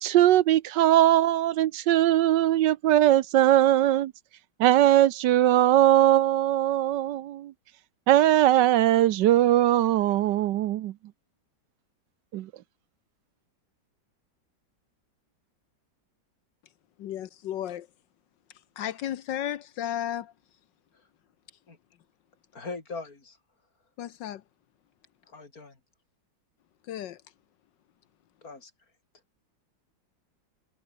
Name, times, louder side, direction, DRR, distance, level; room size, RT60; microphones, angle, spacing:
voice 1, 0.0-4.1 4.6-7.5 8.1-10.9 12.3-12.5, right 13 dB, 75° right, 1.3 m, -20 dB
voice 2, 17.0-17.9 18.8-20.3 24.0-24.4 26.9-27.2, left 11 dB, 75° left, 1.5 m, -33 dB
voice 3, 22.5-23.4 25.3-25.8 28.4-28.7, left 3 dB, 50° left, 3.9 m, -40 dB
omnidirectional pair, 2.0 m